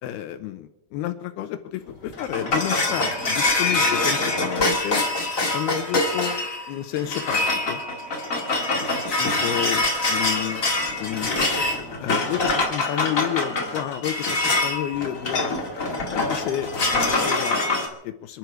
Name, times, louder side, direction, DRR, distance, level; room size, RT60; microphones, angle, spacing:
voice 1, 0.0-5.1 5.5-7.8 9.2-10.7 11.0-11.3 12.0-15.6 16.1-18.4, left 12 dB, 85° left, 8 dB, 2.9 m, -30 dB
sound 1, 1.9-17.9, left 2 dB, 30° left, 1.8 m, -24 dB
28.0 x 10.5 x 4.6 m, 0.88 s
omnidirectional pair, 4.4 m